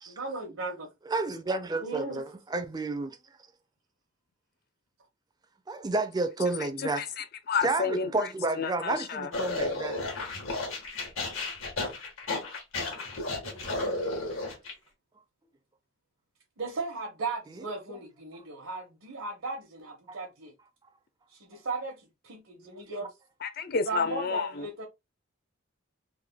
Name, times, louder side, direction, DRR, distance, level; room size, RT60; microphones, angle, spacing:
voice 1, 0.1-0.9 1.8-2.3 11.8-11.9 13.3-14.5 16.6-20.5 21.3-23.1 23.8-24.8, right 3 dB, 80° right, 1.0 m, -37 dB
voice 2, 1.1-3.2 5.7-7.0 7.6-10.0 20.1-20.2, right 3 dB, 20° right, 0.4 m, -30 dB
voice 3, 6.8-8.3 8.5-9.3 23.4-24.7, left 5 dB, 45° left, 0.4 m, -31 dB
sound 1, 9.3-14.7, left 2 dB, 75° left, 1.3 m, -33 dB
3.4 x 2.2 x 3.4 m
head